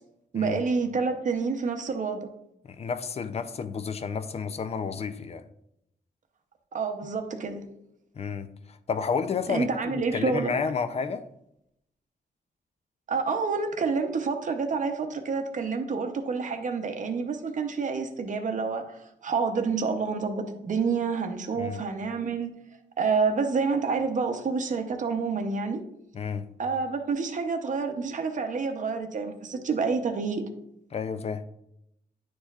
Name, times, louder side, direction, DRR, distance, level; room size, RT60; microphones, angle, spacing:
voice 1, 0.3-2.3 6.7-7.7 9.5-10.5 13.1-22.5 23.0-25.8 26.6-30.5, right 5 dB, 45° right, 0.7 m, -28 dB
voice 2, 2.6-5.5 8.2-11.3 21.5-21.8 26.1-26.5 30.9-31.4, left 5 dB, 35° left, 0.4 m, -31 dB
9.9 x 4.4 x 2.3 m
wide cardioid pair, 160°, 18 cm